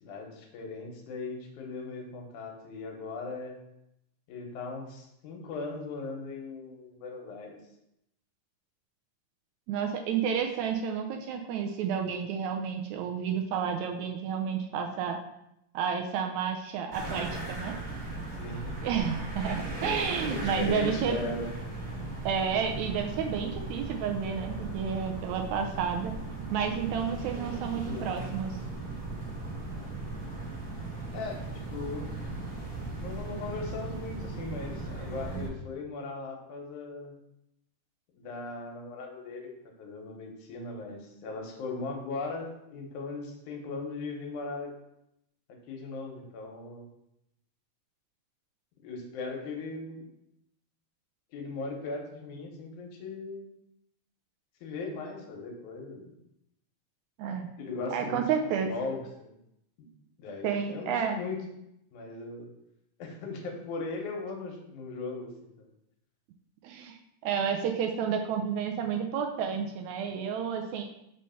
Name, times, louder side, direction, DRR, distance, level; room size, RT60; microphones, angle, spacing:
voice 1, 0.0-3.6 4.3-7.6 18.4-18.7 20.2-21.5 27.7-28.2 31.1-31.4 31.7-32.1 33.0-37.2 38.2-39.5 39.8-44.7 45.7-46.9 48.8-50.1 51.3-53.5 54.6-56.1 57.6-58.2 58.6-59.3 59.8-59.9 60.2-61.4 61.9-62.5 63.0-65.3 65.6-65.7, left 3 dB, 75° left, 1 dB, 2.4 m, -38 dB
voice 2, 9.7-15.2 15.7-17.7 18.8-21.2 22.3-26.1 26.5-28.5 57.2-57.5 57.9-58.7 60.4-61.2 66.6-67.0 67.2-70.8, right 7 dB, 80° right, 3 dB, 1.8 m, -31 dB
sound 1, 16.9-35.5, right 2 dB, 40° right, 1.5 m, -37 dB
5.4 x 3.2 x 5.5 m, 0.81 s
omnidirectional pair, 3.5 m